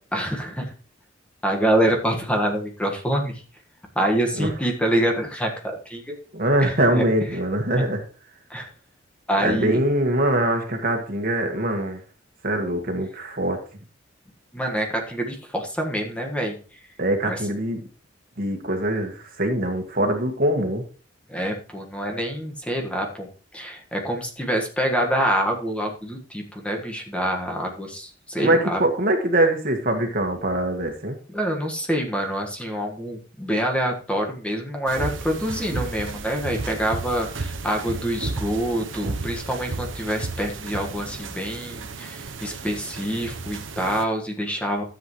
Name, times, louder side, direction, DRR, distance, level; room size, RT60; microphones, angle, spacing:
voice 1, 0.1-0.7 1.4-3.4 3.9-6.1 6.6-7.1 8.5-8.7 9.3-9.8 14.5-16.5 17.3-17.4 21.3-23.3 23.5-28.8 31.3-44.8, right 1 dB, 5° left, 1 dB, 1.5 m, -26 dB
voice 2, 6.3-8.0 9.4-12.0 12.4-13.6 17.0-17.8 18.4-20.8 28.4-31.2, right 1 dB, 50° right, 4 dB, 1.7 m, -23 dB
sound 1, 34.9-44.0, right 3 dB, 90° right, 0.9 m, -33 dB
13.0 x 7.8 x 3.1 m, 0.38 s
head